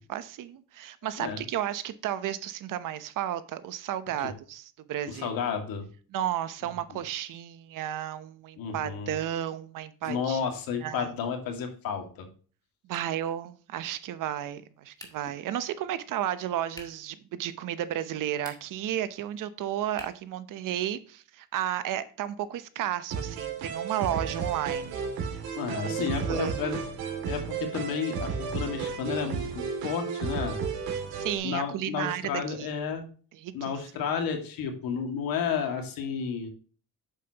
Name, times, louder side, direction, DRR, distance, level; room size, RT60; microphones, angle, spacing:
voice 1, 0.1-5.3 6.1-10.4 10.8-11.1 12.8-25.0 25.7-26.0 26.3-26.6 30.9-32.7 33.3-33.8, right 11 dB, 60° right, 0.9 m, -33 dB
voice 2, 5.1-5.9 6.9-7.0 8.6-9.2 10.1-12.3 25.5-26.8 27.3-30.6 31.4-33.0 33.5-36.5, left 6 dB, 70° left, 2.2 m, -32 dB
sound 1, 14.9-15.4 16.7-17.1 18.3-18.9 19.9-20.3, left 1 dB, 10° left, 1.9 m, -47 dB
sound 2, 23.1-31.4, right 6 dB, 90° right, 2.6 m, -33 dB
8.8 x 7.4 x 2.9 m
cardioid pair, 135°, 35 cm